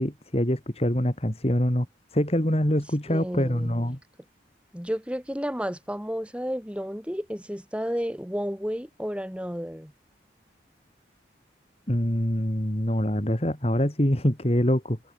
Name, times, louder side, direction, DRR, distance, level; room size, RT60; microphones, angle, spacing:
voice 1, 0.0-1.9 2.1-4.0 11.9-15.0, equal, 35° left, 3.3 m, -24 dB
voice 2, 3.1-3.7 4.7-9.9, equal, 5° right, 6.8 m, -32 dB
head